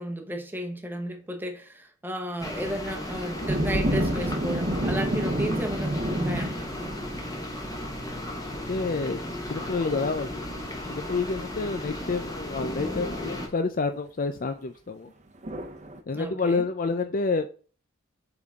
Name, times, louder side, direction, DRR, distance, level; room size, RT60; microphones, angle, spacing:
voice 1, 0.0-7.0 16.1-16.7, equal, 10° right, 1.0 m, -34 dB
sound 1, 2.4-13.5, left 1 dB, 15° left, 1.1 m, -35 dB
sound 2, 3.2-8.9 15.4-16.0, right 1 dB, 35° right, 0.8 m, -29 dB
voice 2, 8.5-9.2 9.5-10.5 10.9-15.1 16.1-17.5, left 4 dB, 40° left, 0.4 m, -28 dB
7.9 x 3.8 x 3.6 m
head